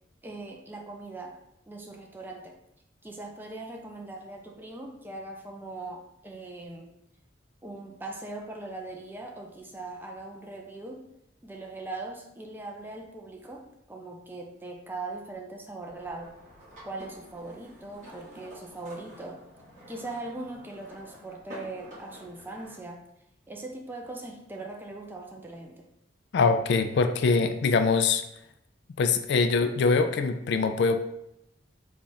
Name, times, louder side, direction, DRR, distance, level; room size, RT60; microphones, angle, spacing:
voice 1, 0.2-1.4 1.7-2.6 3.0-6.9 7.6-11.0 11.4-16.3 16.8-19.4 19.9-23.0 23.5-25.9, right 2 dB, 10° right, 1 dB, 0.5 m, -40 dB
sound 1, 15.8-22.8, equal, 40° right, 1.4 m, -49 dB
voice 2, 26.3-28.2 29.0-31.0, left 4 dB, 65° left, 9 dB, 0.3 m, -23 dB
3.5 x 2.4 x 4.0 m, 0.80 s
head